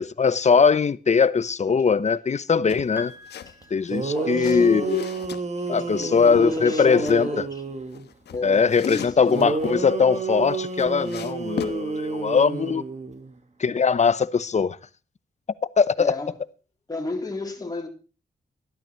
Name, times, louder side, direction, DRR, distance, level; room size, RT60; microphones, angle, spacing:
voice 1, 0.0-3.1 3.7-5.0 5.7-7.5 8.4-12.8 13.6-14.8 15.8-16.2, left 5 dB, 45° left, 0.8 m, -21 dB
sound 1, 2.7-3.5 3.8-5.4 6.0-7.2 7.9-9.8 10.3-11.8, left 8 dB, 90° left, 1.2 m, -37 dB
Piano, 3.0-4.6, left 2 dB, 10° right, 2.9 m, -46 dB
sound 2, 3.6-3.7 3.9-8.1 9.3-13.4, right 4 dB, 45° right, 2.1 m, -30 dB
voice 2, 3.9-4.9 5.6-7.6 8.3-9.5 16.0-16.3 16.9-17.9, left 2 dB, 20° left, 3.6 m, -33 dB
14.0 x 12.0 x 4.5 m
cardioid pair, 80°, 17 cm